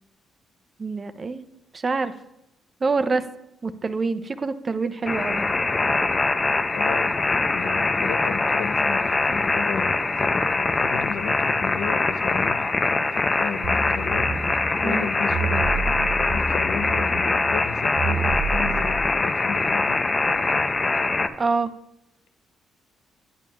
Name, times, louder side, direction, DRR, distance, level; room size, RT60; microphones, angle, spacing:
voice 1, 0.8-1.4 1.7-2.1 2.8-3.2 3.6-5.5 14.8-15.1 21.4-21.7, right 4 dB, 35° right, 0.5 m, -26 dB
sound 1, 5.1-21.3, left 3 dB, 30° left, 0.5 m, -23 dB
voice 2, 6.7-14.4 14.8-15.9 16.3-20.0, left 7 dB, 85° left, 0.5 m, -34 dB
sound 2, 13.6-19.0, right 4 dB, 60° right, 0.9 m, -30 dB
10.5 x 9.0 x 2.3 m
cardioid pair, 90°, 0 cm